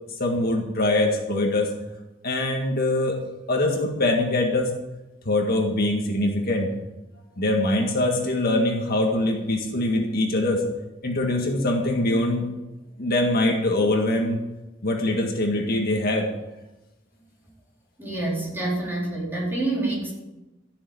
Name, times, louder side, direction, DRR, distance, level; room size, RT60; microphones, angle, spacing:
voice 1, 0.2-1.7 2.2-3.2 3.5-4.7 5.3-6.7 7.3-10.6 11.0-12.5 13.0-14.4 14.8-16.3, left 1 dB, 50° left, 1 dB, 1.9 m, -23 dB
voice 2, 18.0-20.1, right 2 dB, 10° right, -4 dB, 4.4 m, -27 dB
14.0 x 7.1 x 8.9 m, 1.0 s
head